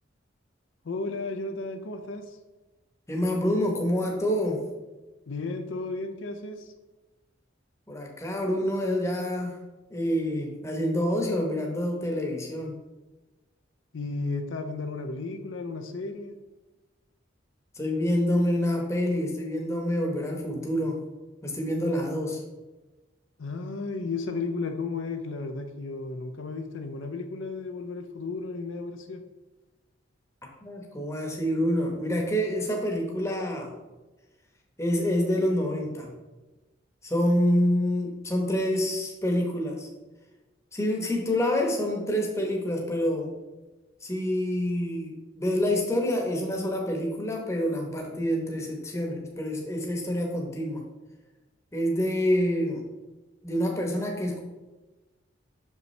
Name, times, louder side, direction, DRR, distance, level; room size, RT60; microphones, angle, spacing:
voice 1, 0.8-2.4 5.3-6.7 13.9-16.3 23.4-29.2, left 3 dB, 80° left, 6 dB, 0.6 m, -34 dB
voice 2, 3.1-4.6 7.9-9.5 9.9-12.7 17.7-21.0 21.4-22.4 30.6-33.7 34.8-36.1 37.0-39.9 40.7-43.3 44.0-50.8 51.7-52.8 53.4-54.4, left 1 dB, 15° left, 0 dB, 0.9 m, -27 dB
6.5 x 5.4 x 3.2 m, 1.2 s
head